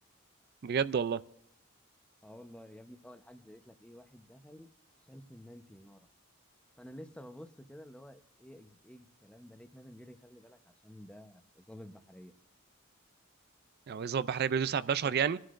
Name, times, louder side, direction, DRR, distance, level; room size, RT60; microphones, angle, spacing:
voice 1, 0.6-1.2 13.9-15.4, right 7 dB, 50° right, 16 dB, 0.4 m, -30 dB
voice 2, 2.2-4.7 5.0-6.1 6.8-12.3 15.0-15.1, equal, 5° left, 7 dB, 0.8 m, -52 dB
25.5 x 11.5 x 2.5 m, 0.70 s
head